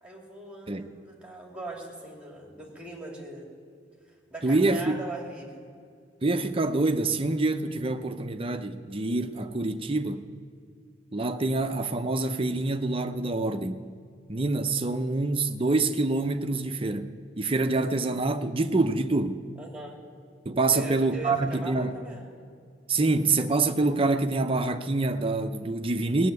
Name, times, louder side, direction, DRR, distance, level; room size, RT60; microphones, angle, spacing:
voice 1, 0.0-3.5 4.1-5.6 19.6-20.0 20.7-22.3, right 2 dB, 5° right, 2.7 m, -40 dB
voice 2, 4.4-5.0 6.2-10.2 11.1-13.9 14.3-19.4 20.4-21.9 22.9-26.3, right 2 dB, 30° right, 0.7 m, -26 dB
18.0 x 7.8 x 9.4 m
head